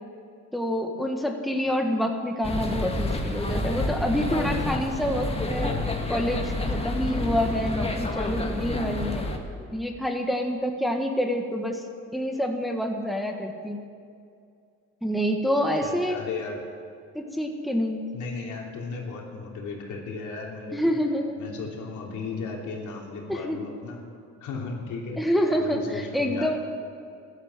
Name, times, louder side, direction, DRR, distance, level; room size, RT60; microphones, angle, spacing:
voice 1, 0.5-5.7 6.1-9.3 9.7-11.8 12.1-13.8 15.0-16.2 17.1-18.1 20.7-21.4 23.3-23.6 25.2-26.6, equal, ahead, 3 dB, 1.5 m, -27 dB
sound 1, 2.4-9.4, left 2 dB, 20° left, 1.9 m, -29 dB
voice 2, 15.8-16.6 18.1-20.9 21.4-24.0 24.4-25.2 25.5-26.6, left 4 dB, 75° left, -1 dB, 3.2 m, -35 dB
14.0 x 11.5 x 7.8 m, 2.3 s
cardioid pair, 90°, 30 cm